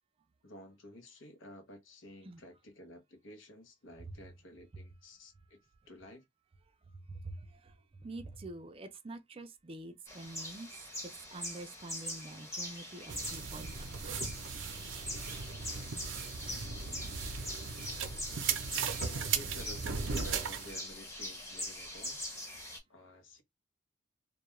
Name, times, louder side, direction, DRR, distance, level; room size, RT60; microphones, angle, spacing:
voice 1, 0.4-5.6 5.9-6.2 18.5-22.2 22.9-23.4, left 1 dB, 80° left, 0.8 m, -52 dB
voice 2, 7.1-10.7 11.3-14.2, right 2 dB, 30° right, 0.4 m, -46 dB
sound 1, 10.1-22.8, left 1 dB, 15° left, 0.9 m, -43 dB
sound 2, 13.1-20.8, right 6 dB, 80° right, 0.5 m, -37 dB
2.3 x 2.1 x 3.0 m
head